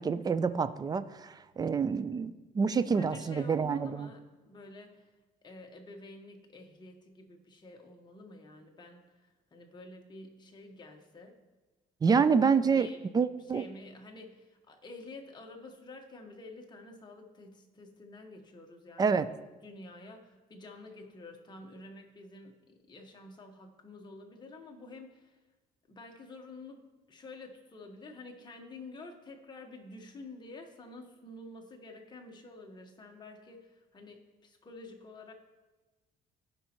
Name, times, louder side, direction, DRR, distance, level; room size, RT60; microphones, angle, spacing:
voice 1, 0.0-4.1 12.0-12.9 13.1-13.7 19.0-19.3, right 5 dB, 25° right, 14 dB, 0.4 m, -27 dB
voice 2, 2.6-5.1 5.4-11.4 12.1-13.1 13.5-19.3 19.6-25.4 25.9-35.3, left 2 dB, 25° left, 2 dB, 1.3 m, -49 dB
15.0 x 5.3 x 3.0 m, 1.2 s
cardioid pair, 110°, 17 cm